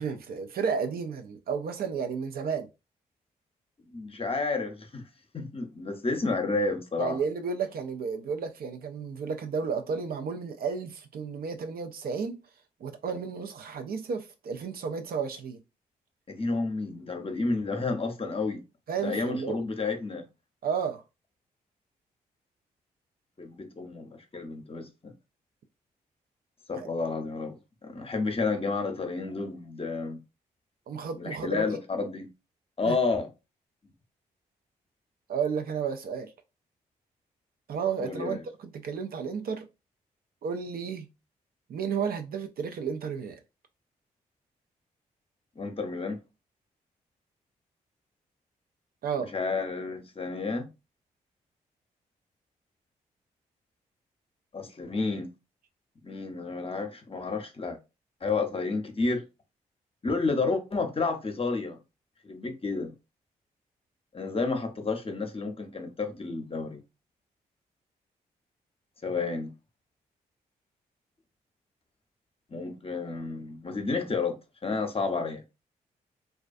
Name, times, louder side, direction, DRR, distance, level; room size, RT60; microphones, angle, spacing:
voice 1, 0.0-2.7 7.0-12.4 12.8-15.6 18.9-19.6 20.6-21.0 26.8-26.9 30.9-31.8 32.8-33.0 35.3-36.3 37.7-39.7 40.4-41.1 41.7-43.4 49.0-49.3, right 6 dB, 60° right, 0.4 m, -32 dB
voice 2, 3.9-5.0 5.3-7.2 16.3-18.6 19.0-20.2 23.4-25.1 26.7-30.2 31.2-32.3 32.8-33.3 38.0-38.4 45.6-46.2 49.3-50.7 54.5-55.3 56.0-57.8 58.2-59.2 60.0-61.8 62.2-62.9 64.1-66.8 69.0-69.5 72.5-75.4, left 3 dB, 30° left, 0.7 m, -31 dB
2.3 x 2.2 x 2.5 m
hypercardioid pair, 40°, 18 cm